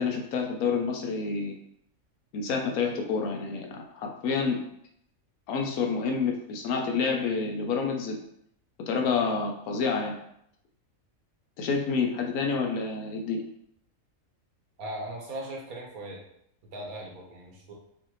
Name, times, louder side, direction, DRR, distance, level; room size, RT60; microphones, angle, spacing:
voice 1, 0.0-1.6 2.3-4.6 5.5-8.1 8.9-10.1 11.6-13.4, left 5 dB, 85° left, 3 dB, 1.2 m, -28 dB
voice 2, 14.8-16.2 16.7-17.7, right 1 dB, 80° right, -1 dB, 1.5 m, -38 dB
5.4 x 2.6 x 3.0 m, 0.72 s
omnidirectional pair, 1.5 m